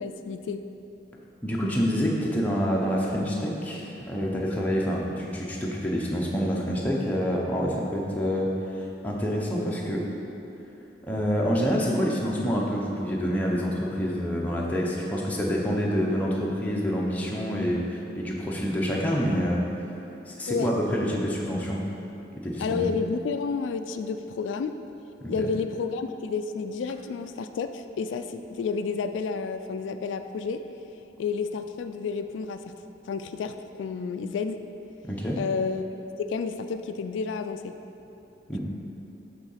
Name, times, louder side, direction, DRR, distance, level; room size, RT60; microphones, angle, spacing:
voice 1, 0.0-0.6 20.5-20.7 22.6-24.7 25.3-30.6 31.2-32.7 33.1-34.6 35.4-37.7, left 5 dB, 85° left, 8 dB, 0.3 m, -30 dB
voice 2, 1.4-10.0 11.1-19.6 20.3-21.8 22.4-22.9 25.2-25.5 35.0-35.4 38.5-38.6, equal, 10° left, -4 dB, 0.8 m, -27 dB
7.9 x 3.7 x 5.6 m, 2.9 s
head